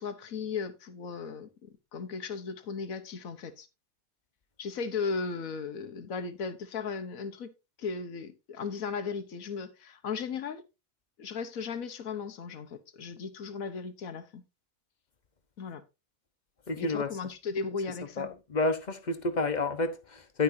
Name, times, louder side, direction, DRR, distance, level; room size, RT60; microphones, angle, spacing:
voice 1, 0.0-3.7 4.6-7.5 7.8-10.6 11.2-14.4 15.6-15.8 16.8-18.4, left 5 dB, 75° left, 1.5 m, -36 dB
voice 2, 16.7-17.1 18.2-20.4, left 3 dB, 35° left, 1.0 m, -30 dB
10.5 x 9.7 x 2.7 m
omnidirectional pair, 1.5 m